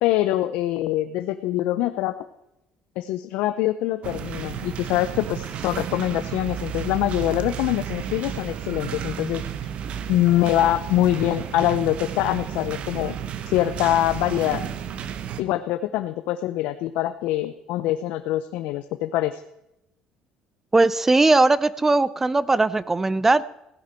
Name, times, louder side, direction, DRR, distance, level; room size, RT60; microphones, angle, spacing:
voice 1, 0.0-2.1 3.0-9.7 10.1-13.2 13.5-14.6 15.4-19.4, left 14 dB, 80° left, 11 dB, 0.6 m, -24 dB
sound 1, 4.0-15.4, right 9 dB, 55° right, 1.0 m, -32 dB
voice 2, 20.7-23.5, right 2 dB, 15° right, 18 dB, 0.4 m, -19 dB
16.0 x 10.0 x 4.4 m, 0.86 s
cardioid pair, 120°, 2 cm